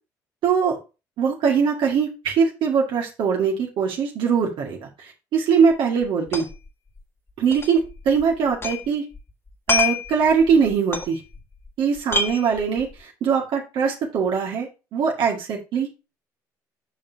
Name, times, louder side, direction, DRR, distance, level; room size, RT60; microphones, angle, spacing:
voice 1, 0.4-0.8 1.2-6.5 7.4-9.0 9.7-11.2 11.8-15.9, right 6 dB, 65° right, 0 dB, 2.0 m, -22 dB
sound 1, 5.7-5.8 6.0-6.7 7.0-7.1 7.5-8.9 9.1-11.7 12.0-13.0, left 4 dB, 30° left, 2.0 m, -27 dB
8.6 x 5.2 x 2.8 m, 0.28 s
hypercardioid pair, 55°, 9 cm